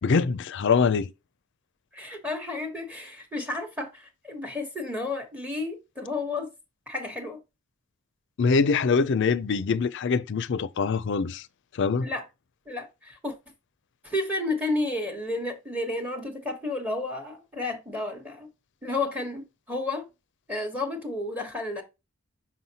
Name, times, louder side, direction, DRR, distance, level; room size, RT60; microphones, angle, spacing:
voice 1, 0.0-1.1 8.4-11.4 11.8-12.1, left 5 dB, 55° left, 0.4 m, -24 dB
voice 2, 1.9-6.5 6.9-7.4 12.0-12.2 12.7-13.3 14.0-18.5 18.8-20.1 20.5-21.8, left 2 dB, 5° right, 1.1 m, -31 dB
6.0 x 5.6 x 2.8 m
head